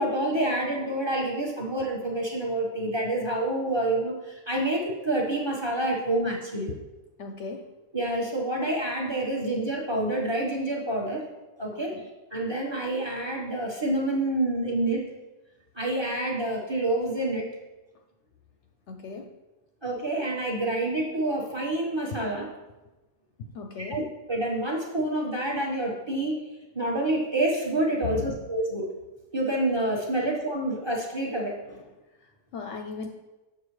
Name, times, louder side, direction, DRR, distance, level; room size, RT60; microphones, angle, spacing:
voice 1, 0.0-6.7 7.9-11.3 11.6-12.0 12.3-15.0 15.7-17.5 19.8-22.5 23.8-24.0 24.3-26.4 26.7-28.9 29.3-31.6, right 1 dB, 20° right, -3 dB, 1.1 m, -28 dB
voice 2, 7.2-7.6 11.7-12.0 18.9-19.3 23.5-24.0 32.5-33.1, left 4 dB, 65° left, 3 dB, 0.8 m, -37 dB
7.0 x 6.7 x 3.2 m, 1.1 s
omnidirectional pair, 1.5 m